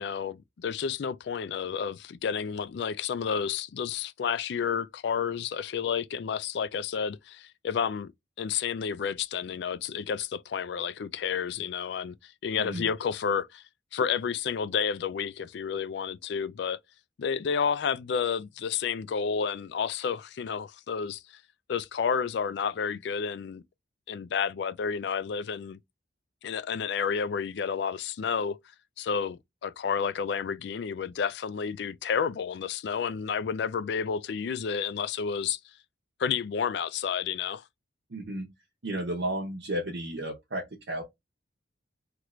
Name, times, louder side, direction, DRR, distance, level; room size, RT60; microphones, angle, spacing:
voice 1, 0.0-8.1 8.4-13.6 13.9-16.8 17.2-21.4 21.7-23.6 24.1-25.8 26.4-28.6 29.0-35.6 36.2-37.6, left 6 dB, 60° left, 0.3 m, -30 dB
voice 2, 38.1-38.5 38.8-41.0, right 1 dB, 65° right, 0.8 m, -33 dB
3.0 x 2.5 x 3.0 m
head